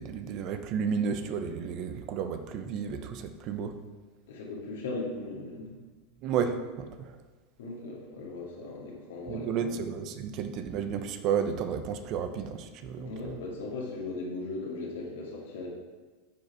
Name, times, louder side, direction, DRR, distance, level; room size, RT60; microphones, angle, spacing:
voice 1, 0.0-3.7 6.2-7.1 9.3-13.4, right 7 dB, 50° right, 8 dB, 0.8 m, -32 dB
voice 2, 4.3-5.8 7.6-9.7 13.0-15.7, left 3 dB, 80° left, -2 dB, 2.3 m, -38 dB
9.4 x 4.9 x 4.8 m, 1.3 s
hypercardioid pair, 95°, 0 cm